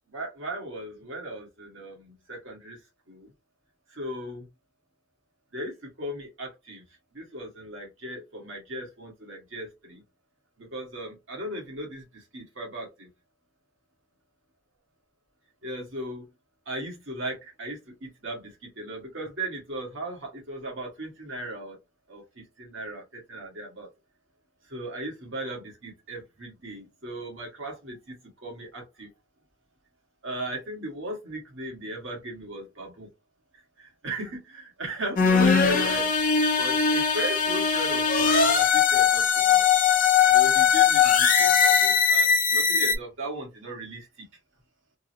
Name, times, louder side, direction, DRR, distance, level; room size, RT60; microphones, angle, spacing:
voice 1, 0.1-2.8 3.1-3.3 3.9-4.5 5.5-6.8 7.1-10.0 10.6-13.1 15.6-16.2 16.6-21.8 22.1-23.9 24.7-28.2 28.4-29.1 30.2-33.1 33.8-36.1 36.6-39.6 40.3-44.2, right 1 dB, 75° right, 1.6 m, -37 dB
sound 1, 35.2-42.9, left 6 dB, 45° left, 0.6 m, -20 dB
3.6 x 2.1 x 2.7 m
head